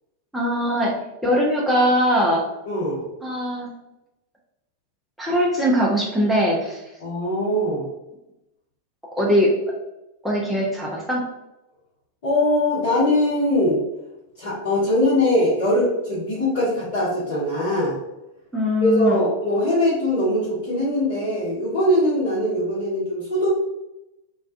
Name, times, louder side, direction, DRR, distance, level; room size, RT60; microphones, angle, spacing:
voice 1, 0.3-0.9 1.2-2.4 3.2-3.7 5.2-6.8 9.2-9.5 10.2-11.2 18.5-19.2, equal, 5° right, -5 dB, 0.5 m, -21 dB
voice 2, 2.7-3.0 7.0-7.9 12.2-13.8 14.4-18.0 18.8-23.5, left 1 dB, 55° left, -10 dB, 0.9 m, -21 dB
2.3 x 2.2 x 2.5 m, 0.93 s
figure-of-eight pair, 90°, 0 cm